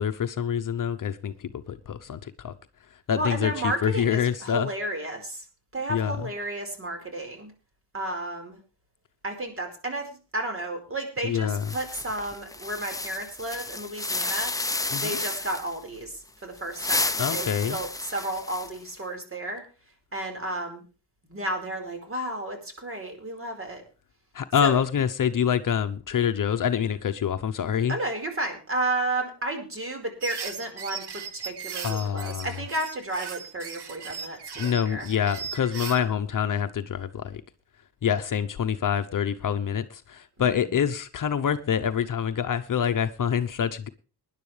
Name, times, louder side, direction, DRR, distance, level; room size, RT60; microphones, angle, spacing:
voice 1, 0.0-2.5 3.1-4.7 5.9-6.1 11.2-11.7 14.9-15.2 17.2-17.8 24.3-28.0 31.8-32.5 34.6-37.4 38.0-43.9, left 8 dB, 50° left, 0.9 m, -26 dB
voice 2, 3.1-5.5 5.7-7.5 7.9-8.6 9.2-14.5 14.9-19.6 20.1-20.8 21.2-23.8 24.6-24.8 27.9-35.1 40.4-40.7, right 1 dB, 30° right, 4.8 m, -32 dB
sound 1, 11.6-15.8 16.6-18.9, left 2 dB, 10° left, 0.8 m, -31 dB
sound 2, 30.2-36.0, right 6 dB, 75° right, 1.8 m, -38 dB
20.0 x 10.5 x 3.3 m
cardioid pair, 100°, 40 cm